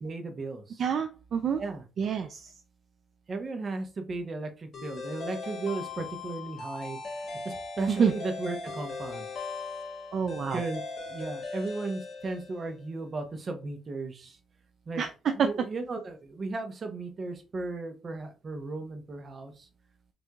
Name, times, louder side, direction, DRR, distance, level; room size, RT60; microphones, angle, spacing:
voice 1, 0.0-0.8 1.6-1.8 3.3-7.0 7.4-9.3 10.5-10.8 11.1-14.4 14.9-15.0 15.4-19.5, right 3 dB, 40° right, 5 dB, 0.8 m, -35 dB
voice 2, 0.8-1.6 2.0-2.5 7.9-8.1 10.1-10.6 15.0-15.5, right 7 dB, 60° right, 7 dB, 0.3 m, -28 dB
sound 1, 4.7-12.9, left 4 dB, 55° left, 1.6 m, -39 dB
4.4 x 2.6 x 2.3 m, 0.32 s
cardioid pair, 90°, 0 cm